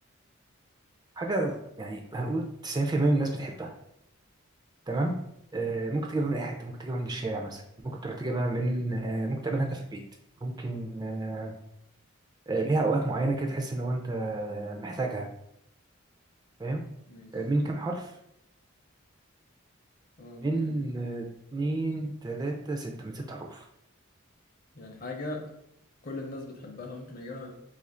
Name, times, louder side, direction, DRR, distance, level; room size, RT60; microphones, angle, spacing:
voice 1, 1.2-3.7 4.9-5.1 5.5-10.0 10.4-11.5 12.5-15.3 16.6-16.8 17.3-18.1 20.4-21.3 21.5-23.7, right 2 dB, 20° right, 1 dB, 0.3 m, -30 dB
voice 2, 20.2-20.8 24.7-25.6 26.0-27.5, left 2 dB, 40° left, 2 dB, 0.6 m, -40 dB
2.7 x 2.5 x 4.2 m, 0.79 s
head